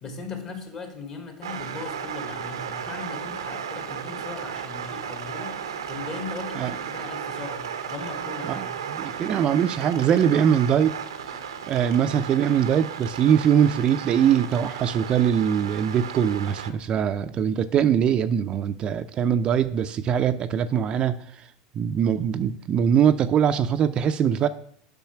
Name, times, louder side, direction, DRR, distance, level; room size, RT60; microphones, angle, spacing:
voice 1, 0.0-8.7, left 4 dB, 40° left, 4 dB, 2.3 m, -38 dB
sound 1, 1.4-16.7, right 7 dB, 90° right, 0.7 m, -34 dB
voice 2, 8.4-10.9 11.7-21.1 21.8-24.5, right 8 dB, 40° right, 10 dB, 0.4 m, -22 dB
7.2 x 5.5 x 5.8 m, 0.63 s
hypercardioid pair, 95°, 2 cm